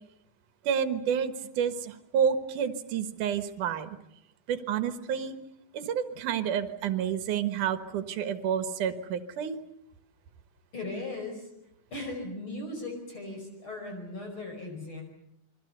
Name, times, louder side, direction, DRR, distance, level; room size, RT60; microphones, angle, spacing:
voice 1, 0.6-4.0 4.5-5.4 5.7-9.6, right 8 dB, 75° right, 9 dB, 2.9 m, -29 dB
voice 2, 10.7-11.5 11.9-15.0, left 2 dB, 40° left, 2 dB, 5.9 m, -38 dB
29.5 x 22.5 x 6.7 m, 0.79 s
omnidirectional pair, 3.6 m